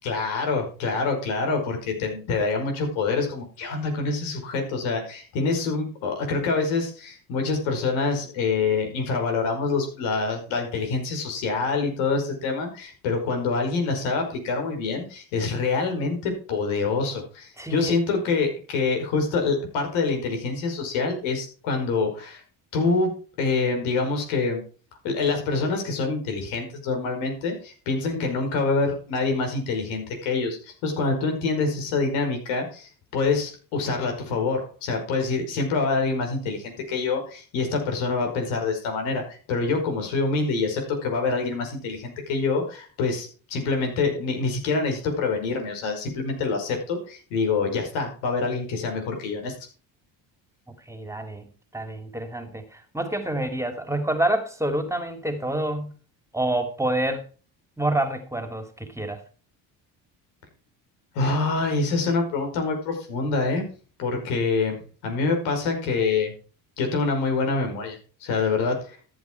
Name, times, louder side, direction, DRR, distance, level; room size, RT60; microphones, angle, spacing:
voice 1, 0.0-22.4 22.7-23.1 23.4-24.6 25.0-49.5 61.2-63.6 64.0-66.3 66.8-69.0, left 4 dB, 80° left, 5.3 m, -26 dB
voice 2, 17.6-18.0 50.9-51.5 51.7-55.9 56.3-57.2 57.8-59.2, right 1 dB, 5° right, 2.7 m, -27 dB
14.0 x 8.3 x 4.6 m
hypercardioid pair, 65°, 47 cm